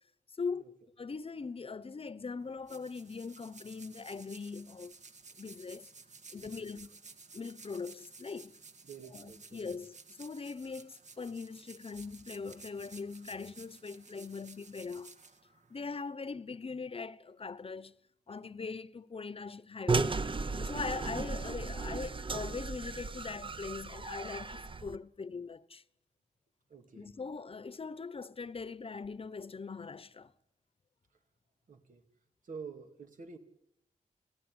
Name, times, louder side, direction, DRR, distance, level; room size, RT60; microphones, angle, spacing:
voice 1, 0.4-5.0 5.4-5.9 6.3-6.9 7.3-8.6 9.1-15.2 15.7-18.0 18.3-20.2 20.6-25.8 27.0-30.3, left 4 dB, 45° left, 1.0 m, -41 dB
sound 1, 2.4-16.0, right 4 dB, 60° right, 2.2 m, -55 dB
voice 2, 6.4-6.8 8.8-9.8 26.7-27.2 31.7-32.0 32.4-33.4, right 5 dB, 80° right, 3.0 m, -49 dB
sound 2, 19.9-25.0, right 4 dB, 40° right, 1.0 m, -35 dB
29.0 x 17.0 x 9.7 m
wide cardioid pair, 85°, 13 cm